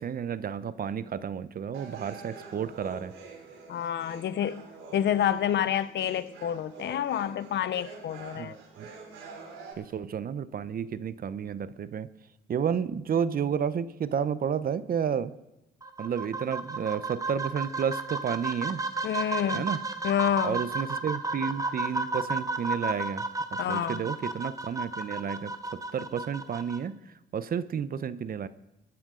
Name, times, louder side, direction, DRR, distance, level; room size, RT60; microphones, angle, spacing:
voice 1, 0.0-3.1 8.4-8.9 9.8-12.1 12.5-15.3 16.0-18.8 19.5-19.8 20.4-28.5, right 7 dB, 45° right, 0.7 m, -31 dB
sound 1, 1.7-9.7, right 4 dB, 85° right, 3.5 m, -46 dB
voice 2, 3.7-4.7 4.9-8.5 19.0-19.7 20.0-20.6 23.6-24.0, left 10 dB, 60° left, 0.6 m, -28 dB
sound 2, 15.8-26.8, right 3 dB, 15° right, 1.1 m, -33 dB
21.5 x 10.5 x 3.8 m
cardioid pair, 90°, 20 cm